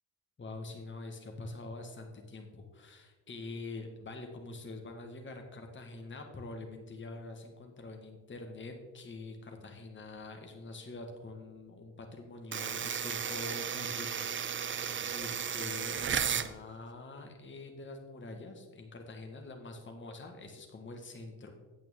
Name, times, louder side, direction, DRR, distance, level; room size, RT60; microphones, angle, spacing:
voice 1, 0.4-21.5, left 2 dB, 25° left, 4 dB, 1.5 m, -45 dB
sound 1, 12.5-16.5, right 7 dB, 25° right, 0.5 m, -34 dB
8.9 x 8.3 x 3.6 m, 1.3 s
hypercardioid pair, 60°, 47 cm